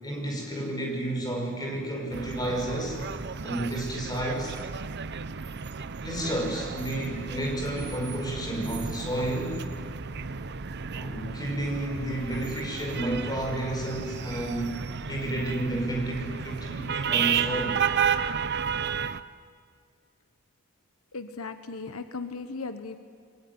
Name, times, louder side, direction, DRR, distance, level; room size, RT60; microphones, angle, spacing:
voice 1, 0.0-3.0 3.4-4.6 6.0-9.6 10.9-17.8, right 1 dB, 20° left, 1 dB, 5.6 m, -31 dB
sound 1, 2.1-19.2, right 6 dB, 50° right, 0.7 m, -32 dB
voice 2, 21.1-23.0, left 4 dB, 75° left, 9 dB, 1.2 m, -37 dB
28.0 x 22.0 x 9.6 m, 2.1 s
head